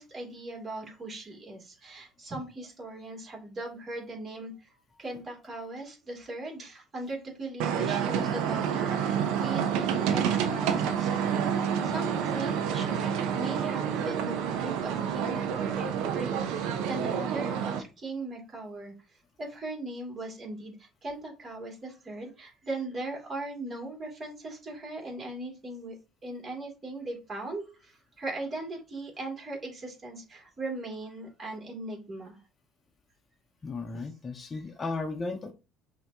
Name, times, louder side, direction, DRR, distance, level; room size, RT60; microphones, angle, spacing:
voice 1, 0.0-9.0 9.3-18.9 19.4-26.0 26.2-32.4 34.5-34.6, right 2 dB, 35° right, -1 dB, 2.5 m, -39 dB
sound 1, 7.6-17.8, right 8 dB, 70° right, 0.7 m, -28 dB
voice 2, 33.6-35.5, left 3 dB, 30° left, 4 dB, 0.8 m, -35 dB
5.6 x 2.9 x 2.8 m, 0.31 s
hypercardioid pair, 70°, 0 cm